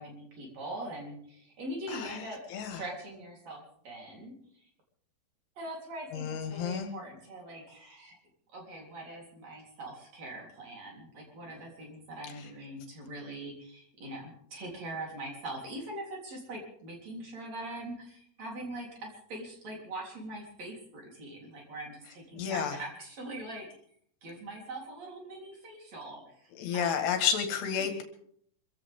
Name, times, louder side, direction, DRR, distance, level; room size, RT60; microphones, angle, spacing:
voice 1, 0.0-4.7 5.6-8.2 8.5-23.7 24.2-27.1, right 1 dB, 45° right, -1 dB, 4.7 m, -42 dB
voice 2, 1.9-2.8 6.1-6.9 22.3-22.8 26.6-28.0, left 7 dB, 85° left, 6 dB, 3.8 m, -31 dB
25.0 x 15.5 x 3.7 m, 0.65 s
omnidirectional pair, 4.6 m